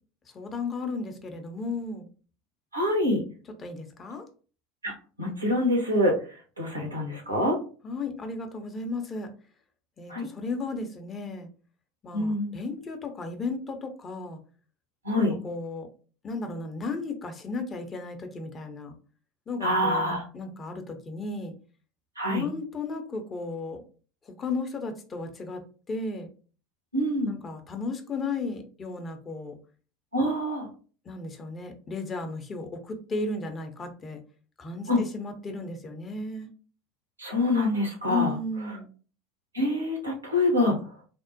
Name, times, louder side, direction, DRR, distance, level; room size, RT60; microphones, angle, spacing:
voice 1, 0.3-2.1 3.6-4.3 7.8-9.3 10.0-11.5 12.0-14.4 15.2-15.9 16.2-18.9 19.5-21.5 22.3-23.8 24.3-25.6 25.9-26.3 27.3-29.6 31.1-34.2 34.6-36.5 38.1-38.9, left 3 dB, 30° left, 5 dB, 0.6 m, -34 dB
voice 2, 2.7-3.2 4.8-4.9 5.2-6.1 6.6-7.6 10.1-10.3 12.1-12.5 15.0-15.3 19.6-20.2 22.2-22.5 26.9-27.4 30.1-30.7 34.9-35.0 37.2-38.3 39.5-40.8, left 1 dB, 90° right, 0 dB, 0.9 m, -25 dB
3.4 x 2.0 x 2.6 m, 0.39 s
figure-of-eight pair, 75°, 0 cm